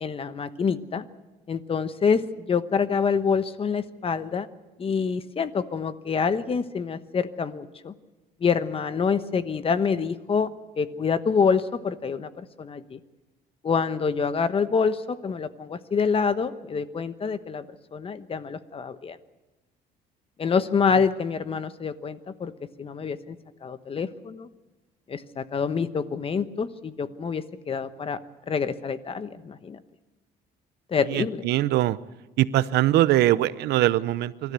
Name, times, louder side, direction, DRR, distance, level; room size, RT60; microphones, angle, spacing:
voice 1, 0.0-1.1 1.5-4.5 4.8-7.9 8.4-10.5 10.8-13.0 13.6-19.2 20.4-22.5 22.8-23.4 23.6-24.5 25.1-28.2 28.5-29.8 30.9-31.5, left 5 dB, 35° left, 12 dB, 1.1 m, -26 dB
voice 2, 31.1-32.0 32.4-34.5, right 14 dB, 80° right, 16 dB, 0.7 m, -22 dB
25.0 x 13.0 x 8.3 m, 1.1 s
cardioid pair, 110°, 17 cm